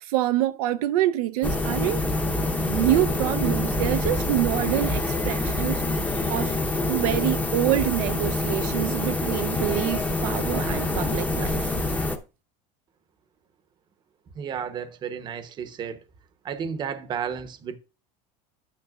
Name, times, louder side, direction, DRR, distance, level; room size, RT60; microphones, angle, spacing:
voice 1, 0.0-2.1 2.7-5.8 6.3-6.6 6.9-11.8, right 14 dB, 85° right, 0.7 m, -26 dB
sound 1, 1.4-12.2, left 2 dB, 10° left, 0.8 m, -26 dB
voice 2, 14.3-16.0 16.4-17.8, right 7 dB, 25° right, 0.8 m, -32 dB
11.0 x 9.2 x 2.4 m
cardioid pair, 165°, 19 cm